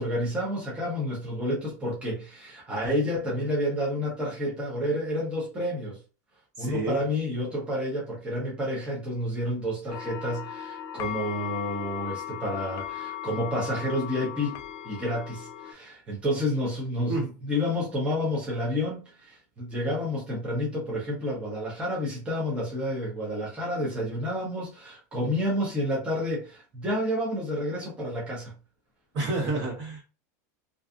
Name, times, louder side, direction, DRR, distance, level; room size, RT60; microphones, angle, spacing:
voice 1, 0.0-6.0 6.6-14.6 14.8-28.5, left 1 dB, 10° right, 0.8 m, -30 dB
voice 2, 6.6-7.0 17.1-17.3 29.1-30.0, right 2 dB, 50° right, 1.2 m, -29 dB
sound 1, 9.9-15.7, left 11 dB, 30° left, 0.3 m, -37 dB
2.5 x 2.4 x 2.4 m
supercardioid pair, 150°, 10 cm